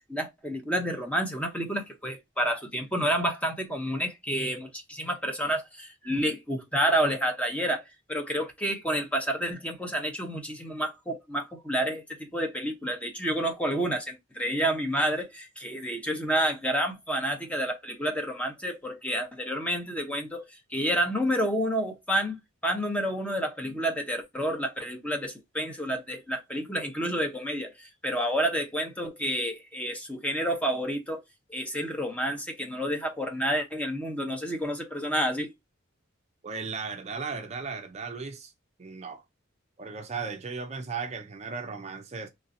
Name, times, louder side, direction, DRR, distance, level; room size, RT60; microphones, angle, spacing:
voice 1, 0.1-7.8 8.1-20.5 20.7-31.2 31.5-35.5, equal, 5° left, 0.6 m, -29 dB
voice 2, 36.4-38.5 38.8-39.2 39.8-42.3, right 5 dB, 35° right, 0.4 m, -36 dB
3.2 x 2.7 x 2.5 m
head